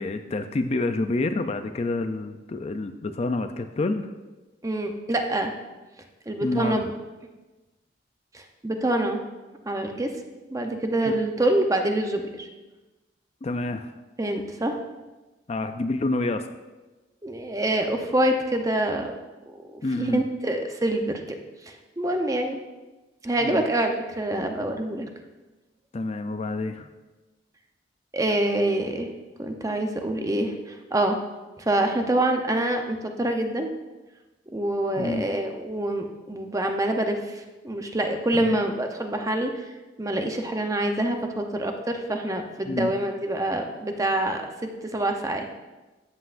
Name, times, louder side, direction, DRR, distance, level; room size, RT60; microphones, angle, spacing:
voice 1, 0.0-4.1 6.4-6.8 11.1-11.2 13.4-13.9 15.5-16.5 19.8-20.2 23.4-23.6 25.9-26.9 35.0-35.2 38.3-38.6 42.7-42.9, left 2 dB, 35° left, 8 dB, 0.4 m, -28 dB
voice 2, 4.6-5.5 6.3-6.9 8.3-9.2 9.7-10.1 10.5-12.5 14.2-14.7 17.2-19.1 19.5-21.1 22.0-22.6 23.2-25.0 28.1-29.1 29.4-31.2 31.6-33.7 34.5-39.7 40.0-44.4 44.8-45.4, right 1 dB, 20° right, 4 dB, 0.7 m, -26 dB
13.0 x 8.1 x 2.5 m, 1.2 s
head